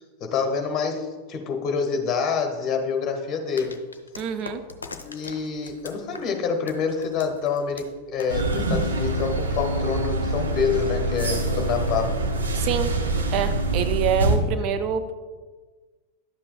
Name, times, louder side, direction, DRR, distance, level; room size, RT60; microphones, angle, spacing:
voice 1, 0.0-3.7 5.0-12.1, left 5 dB, 30° left, 4 dB, 1.2 m, -27 dB
sound 1, 3.6-9.3, left 4 dB, 75° left, 0.6 m, -42 dB
voice 2, 4.2-4.6 12.5-12.9 13.3-15.1, right 7 dB, 40° right, 8 dB, 0.4 m, -26 dB
sound 2, 8.3-14.4, right 2 dB, 70° right, 1.1 m, -25 dB
11.0 x 7.4 x 2.2 m, 1.4 s
figure-of-eight pair, 90°, 0 cm